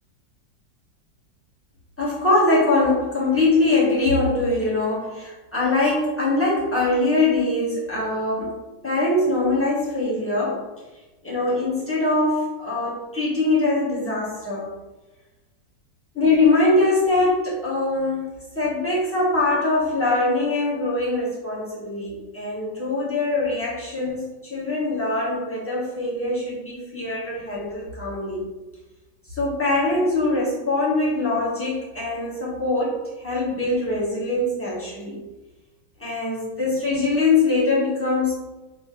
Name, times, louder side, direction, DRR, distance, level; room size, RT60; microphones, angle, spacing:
voice 1, 2.0-8.5 8.8-10.7 11.2-14.7 16.1-18.3 18.5-28.4 29.3-35.2 36.0-38.3, left 2 dB, 10° left, -8 dB, 0.8 m, -22 dB
4.1 x 2.9 x 3.0 m, 1.1 s
omnidirectional pair, 2.0 m